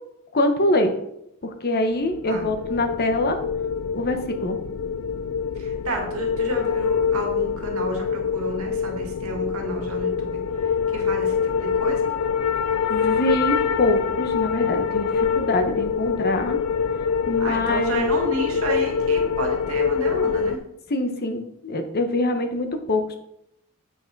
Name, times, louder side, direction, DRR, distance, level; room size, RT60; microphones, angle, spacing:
voice 1, 0.3-0.9 1.4-3.4 3.9-4.6 12.9-16.6 17.3-18.1 20.9-23.2, left 1 dB, 45° left, 6 dB, 1.0 m, -24 dB
sound 1, 2.0-20.6, left 6 dB, 85° left, 0.5 m, -25 dB
voice 2, 5.6-12.1 17.4-20.6, right 2 dB, 70° right, 1 dB, 2.0 m, -31 dB
8.4 x 5.8 x 4.6 m, 0.79 s
head